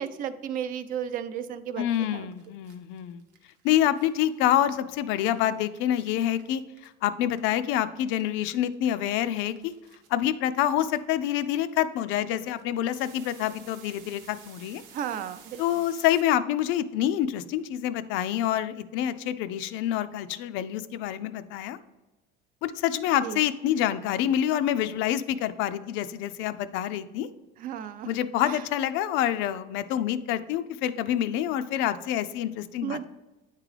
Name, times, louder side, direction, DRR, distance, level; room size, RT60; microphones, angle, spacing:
voice 1, 0.0-2.3 14.9-15.6 23.2-23.4 27.6-28.1 28.4-28.6 32.8-33.0, right 9 dB, 45° right, 12 dB, 0.4 m, -34 dB
voice 2, 1.8-3.2 3.6-9.7 10.1-14.8 15.6-21.8 22.6-27.3 28.1-33.0, left 11 dB, 75° left, 12 dB, 0.4 m, -27 dB
sound 1, 2.0-2.1 2.3-7.8 8.1-16.2, right 6 dB, 65° right, 0.8 m, -53 dB
9.5 x 3.7 x 3.3 m, 1.1 s
cardioid pair, 165°, 20 cm